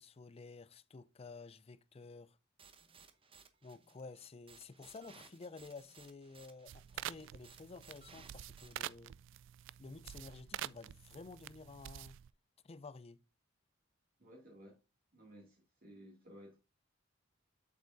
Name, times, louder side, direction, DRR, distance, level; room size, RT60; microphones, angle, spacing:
voice 1, 0.0-2.4 3.6-9.2 9.8-12.2 12.6-13.2, left 4 dB, 30° left, 0.4 m, -52 dB
sound 1, 2.6-8.7, right 5 dB, 30° right, 0.8 m, -61 dB
sound 2, 6.7-12.3, right 12 dB, 65° right, 0.3 m, -47 dB
voice 2, 14.2-14.8 15.1-16.6, equal, 50° right, 2.3 m, -56 dB
7.9 x 6.9 x 2.6 m
head